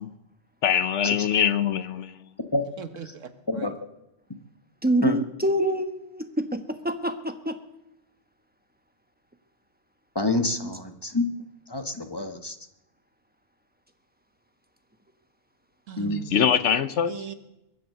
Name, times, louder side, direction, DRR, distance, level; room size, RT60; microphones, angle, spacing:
voice 1, 0.6-2.1 16.3-17.1, left 8 dB, 70° left, 12 dB, 1.1 m, -23 dB
voice 2, 2.8-3.7 15.9-16.4 17.1-17.3, right 7 dB, 80° right, 9 dB, 1.5 m, -38 dB
voice 3, 4.8-7.5, right 1 dB, 10° right, 7 dB, 1.0 m, -26 dB
voice 4, 10.1-11.3 11.7-12.6 16.0-16.2, left 2 dB, 20° left, 6 dB, 1.1 m, -27 dB
22.5 x 7.9 x 6.7 m, 0.88 s
omnidirectional pair, 1.3 m